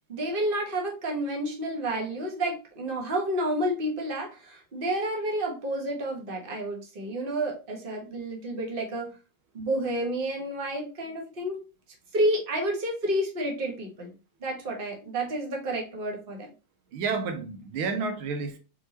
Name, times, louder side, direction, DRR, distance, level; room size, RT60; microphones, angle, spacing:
voice 1, 0.1-9.1 9.5-11.6 12.1-14.1 14.4-16.5, right 1 dB, 30° right, 1.4 m, -30 dB
voice 2, 16.9-18.6, right 4 dB, 90° right, 1.7 m, -30 dB
4.8 x 3.9 x 2.9 m
omnidirectional pair, 2.2 m